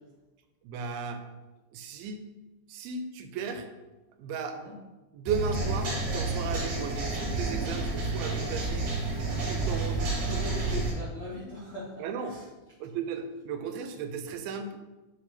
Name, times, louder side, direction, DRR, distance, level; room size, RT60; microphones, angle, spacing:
voice 1, 0.6-1.2 1.7-2.3 2.7-3.7 4.2-4.6 5.1-10.3 12.0-12.4 12.8-14.8, right 6 dB, 85° right, 7 dB, 2.4 m, -35 dB
sound 1, 5.3-10.9, right 3 dB, 60° right, 2.2 m, -30 dB
voice 2, 9.1-9.7 10.1-12.4, left 2 dB, 85° left, -7 dB, 1.0 m, -41 dB
5.1 x 4.7 x 4.2 m, 1.1 s
omnidirectional pair, 4.3 m